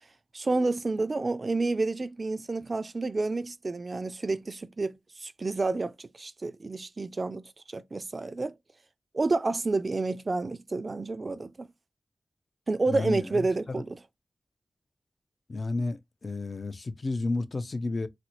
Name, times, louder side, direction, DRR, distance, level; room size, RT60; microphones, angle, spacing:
voice 1, 0.3-4.9 5.2-8.5 9.1-11.7 12.7-14.0, right 3 dB, 50° right, 0.4 m, -29 dB
voice 2, 12.9-13.8 15.5-18.1, left 3 dB, 55° left, 0.5 m, -32 dB
4.1 x 2.1 x 3.0 m
cardioid pair, 40°, 0 cm